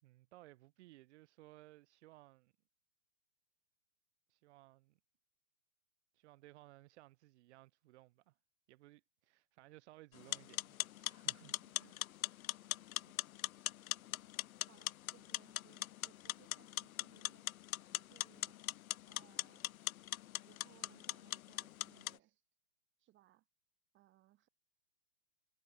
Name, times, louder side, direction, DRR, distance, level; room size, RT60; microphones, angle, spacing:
voice 1, 0.0-2.5 4.3-5.0 6.1-8.4 8.7-12.0, right 17 dB, 40° right, 4.7 m, -61 dB
sound 1, 10.2-22.2, left 13 dB, 55° left, 0.7 m, -42 dB
voice 2, 11.5-12.0 13.0-13.3 13.8-14.0 14.7-17.5 17.9-18.6 19.1-20.0 20.4-22.4 23.0-23.5 23.9-24.5, right 15 dB, 20° right, 5.6 m, -68 dB
hypercardioid pair, 150°, 50 cm